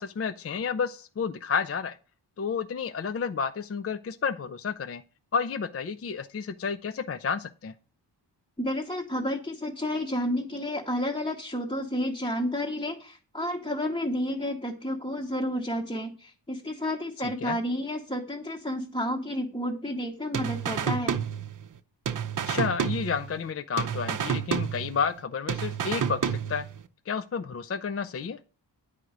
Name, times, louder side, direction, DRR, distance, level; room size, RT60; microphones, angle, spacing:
voice 1, 0.0-2.0 2.4-5.0 5.3-7.7 17.4-17.6 22.5-26.7 27.1-28.4, left 6 dB, 35° left, 12 dB, 0.4 m, -31 dB
voice 2, 8.6-21.2, left 1 dB, 10° left, 0 dB, 0.9 m, -31 dB
sound 1, 20.3-21.8 22.1-23.5 23.8-25.2 25.5-26.8, right 7 dB, 45° right, 0.6 m, -30 dB
9.7 x 5.0 x 7.9 m, 0.36 s
wide cardioid pair, 160°, 44 cm